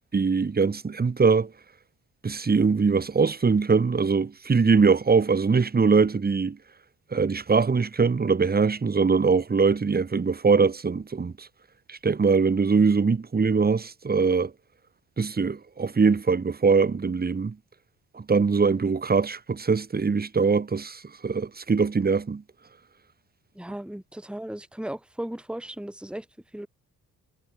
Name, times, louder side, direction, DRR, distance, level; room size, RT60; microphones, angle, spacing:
voice 1, 0.1-1.5 2.2-6.6 7.1-11.5 11.9-14.5 15.2-17.6 18.1-22.4, right 5 dB, 20° right, 1.0 m, -22 dB
voice 2, 23.6-26.3 26.5-26.7, right 1 dB, ahead, 2.2 m, -36 dB
hypercardioid pair, 40°, 49 cm